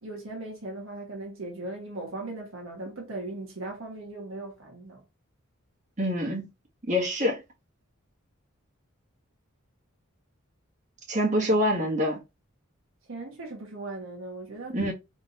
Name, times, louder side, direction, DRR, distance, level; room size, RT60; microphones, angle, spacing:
voice 1, 0.0-5.0 11.4-11.6 13.1-14.8, right 2 dB, 70° right, 1.3 m, -38 dB
voice 2, 6.0-6.5 6.8-7.4 11.1-12.2 14.7-14.9, equal, 35° right, 1.7 m, -25 dB
4.2 x 3.5 x 2.5 m
head